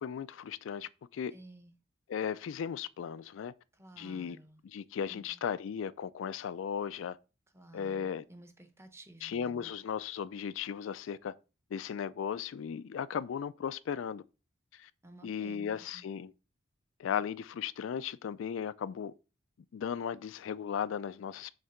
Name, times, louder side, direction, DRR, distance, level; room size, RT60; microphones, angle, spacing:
voice 1, 0.0-1.3 2.1-3.5 4.0-4.4 4.6-7.2 7.7-8.2 9.2-11.3 11.7-14.2 14.7-14.9 15.2-16.3 17.0-19.1 19.7-21.5, left 7 dB, 75° left, 0.3 m, -36 dB
voice 2, 1.3-1.7 3.8-4.6 5.1-5.3 7.5-9.7 15.0-16.1, right 1 dB, 15° right, 0.8 m, -54 dB
6.4 x 3.2 x 5.8 m
head